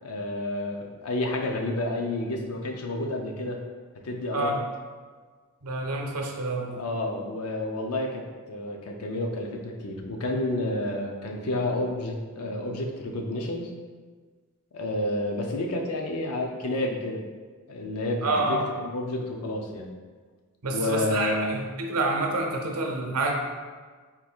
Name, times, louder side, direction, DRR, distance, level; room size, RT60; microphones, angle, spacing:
voice 1, 0.0-3.6 4.0-4.5 6.8-8.2 8.5-13.7 14.7-17.2 17.7-19.9 20.7-21.6, left 1 dB, 80° left, 2 dB, 0.6 m, -30 dB
voice 2, 5.6-6.8 18.2-18.6 20.6-23.3, right 2 dB, 80° right, 1 dB, 0.6 m, -28 dB
3.7 x 2.3 x 4.4 m, 1.5 s
head